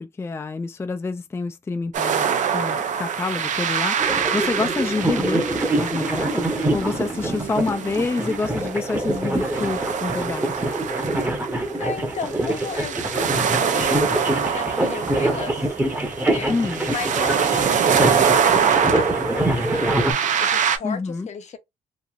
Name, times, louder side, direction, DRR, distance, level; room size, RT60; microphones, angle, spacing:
voice 1, 0.0-5.5 5.8-10.8 16.5-17.0 20.8-21.3, left 3 dB, 20° left, 0.3 m, -28 dB
sound 1, 1.9-20.8, right 7 dB, 65° right, 0.5 m, -25 dB
sound 2, 4.0-20.1, right 1 dB, 15° right, 0.9 m, -25 dB
voice 2, 11.8-16.5 16.9-19.9 20.2-21.6, left 6 dB, 60° left, 0.7 m, -35 dB
3.0 x 2.6 x 2.4 m
cardioid pair, 90°, 14 cm